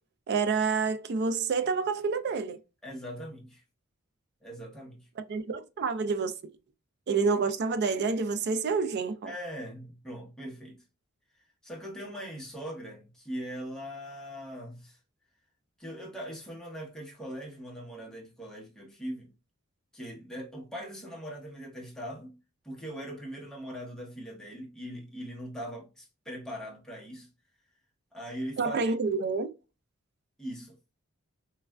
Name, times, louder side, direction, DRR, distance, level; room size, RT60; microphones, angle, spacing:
voice 1, 0.3-2.6 5.2-6.3 7.1-9.3 28.6-29.5, right 4 dB, 55° right, 0.4 m, -28 dB
voice 2, 2.8-3.6 4.4-5.1 9.2-10.8 11.6-15.0 15.8-19.3 19.9-22.3 22.6-27.3 28.1-28.9 30.4-30.8, equal, 5° left, 0.9 m, -41 dB
3.3 x 2.4 x 2.2 m
head